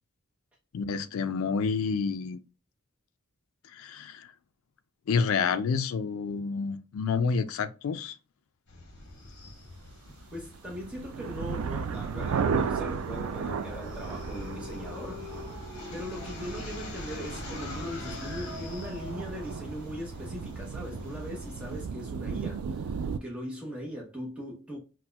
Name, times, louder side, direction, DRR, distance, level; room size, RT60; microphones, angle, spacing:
voice 1, 0.7-2.4 3.7-4.3 5.1-8.2, left 5 dB, 70° left, 0.3 m, -29 dB
sound 1, 8.7-21.8, left 1 dB, 55° left, 1.0 m, -44 dB
voice 2, 10.3-15.4 15.9-24.8, equal, 5° right, 0.8 m, -40 dB
sound 2, 10.4-23.2, right 6 dB, 75° right, 0.3 m, -35 dB
sound 3, 13.4-22.5, left 2 dB, 30° left, 1.6 m, -47 dB
4.1 x 2.1 x 2.2 m
head